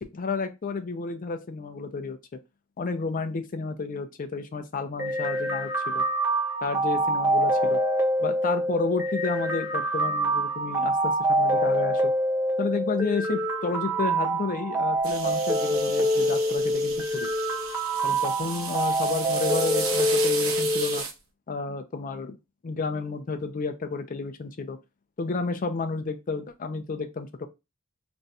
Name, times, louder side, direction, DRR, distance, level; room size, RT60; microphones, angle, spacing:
voice 1, 0.0-2.2 2.8-6.0 6.6-7.8 8.2-12.1 12.6-17.3 18.0-21.0 21.5-22.4 22.6-24.8 25.2-27.5, left 4 dB, 40° left, 0.4 m, -31 dB
sound 1, 5.0-21.0, right 1 dB, 10° right, 0.7 m, -25 dB
sound 2, 15.0-21.1, right 5 dB, 85° right, 0.8 m, -34 dB
2.5 x 2.2 x 4.0 m
head